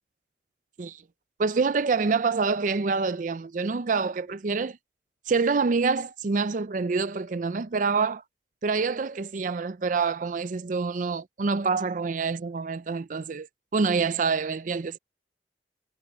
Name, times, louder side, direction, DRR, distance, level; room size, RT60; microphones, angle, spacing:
voice 1, 1.4-4.8 5.3-8.2 8.6-13.5 13.7-15.0, right 4 dB, 45° right, 0.5 m, -26 dB
head